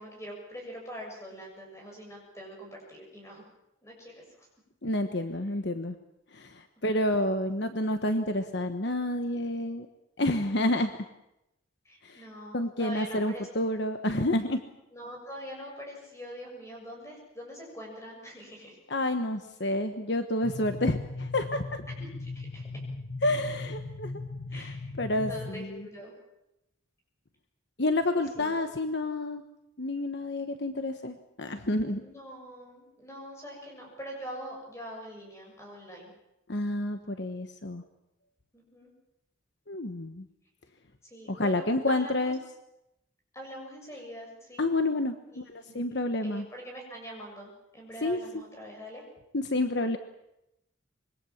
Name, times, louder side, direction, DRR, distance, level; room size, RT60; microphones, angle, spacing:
voice 1, 0.0-3.4 3.8-4.5 11.8-13.5 14.9-18.8 21.9-22.7 24.5-24.8 25.2-26.2 28.1-28.5 32.0-36.1 38.5-38.9 41.0-42.3 43.3-44.7 45.3-45.9 46.2-49.0, equal, 15° left, 0 dB, 7.3 m, -44 dB
voice 2, 4.8-5.9 6.3-9.9 10.2-10.9 12.0-12.2 12.5-14.6 18.9-21.8 23.2-24.1 24.5-25.8 27.8-29.4 29.8-32.0 36.5-37.8 39.7-40.2 41.3-42.4 44.6-46.5 48.0-48.2 49.3-50.0, left 1 dB, 55° left, 8 dB, 1.3 m, -29 dB
sound 1, 20.4-25.6, left 3 dB, 85° left, 2.0 m, -38 dB
25.5 x 22.5 x 7.3 m, 0.87 s
head